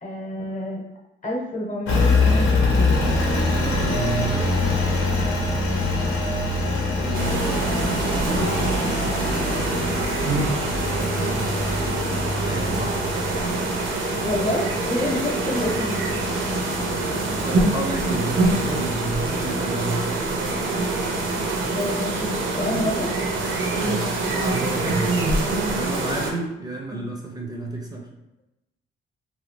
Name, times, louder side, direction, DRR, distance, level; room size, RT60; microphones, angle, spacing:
voice 1, 0.0-0.8 1.2-3.0 14.2-16.2 21.7-23.1 26.9-27.1, left 1 dB, 40° left, -1 dB, 0.9 m, -29 dB
Engine, 1.9-19.8, left 2 dB, 80° left, 0.8 m, -25 dB
voice 2, 3.5-4.6 6.7-9.9 10.8-11.5 12.4-13.0 16.9-20.1 23.8-28.1, right 2 dB, 20° right, 0 dB, 0.5 m, -32 dB
sound 1, 7.1-26.3, right 2 dB, 75° right, 0.7 m, -25 dB
2.7 x 2.6 x 3.2 m, 0.92 s
cardioid pair, 90°, 20 cm